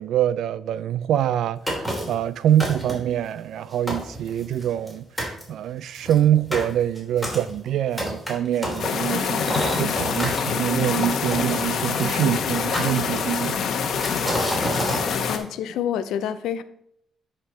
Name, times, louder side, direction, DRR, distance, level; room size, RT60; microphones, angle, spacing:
voice 1, 0.0-13.6, right 11 dB, 75° right, 0.4 m, -25 dB
sound 1, 1.7-2.2 2.6-3.1 3.6-3.7 3.9-4.9 5.2-5.4 5.9-10.4 11.3-12.2 12.7-13.5 13.9-15.0, equal, ahead, 3.2 m, -29 dB
sound 2, 8.8-15.4, left 6 dB, 65° left, 1.0 m, -25 dB
voice 2, 15.3-16.6, left 9 dB, 85° left, 0.5 m, -27 dB
10.0 x 4.4 x 4.2 m
cardioid pair, 90°, 0 cm